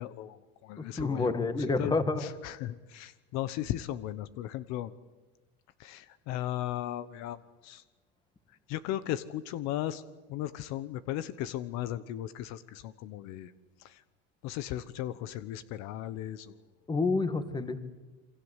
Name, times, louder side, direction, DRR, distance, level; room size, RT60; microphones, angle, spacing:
voice 1, 0.0-4.9 5.8-7.8 8.7-10.0 10.3-13.5 13.8-14.0 14.4-16.6, left 13 dB, 65° left, 14 dB, 1.1 m, -36 dB
voice 2, 0.8-2.3 16.9-17.8, left 3 dB, 15° left, 10 dB, 1.9 m, -29 dB
28.0 x 24.5 x 8.2 m, 1.2 s
cardioid pair, 140°, 30 cm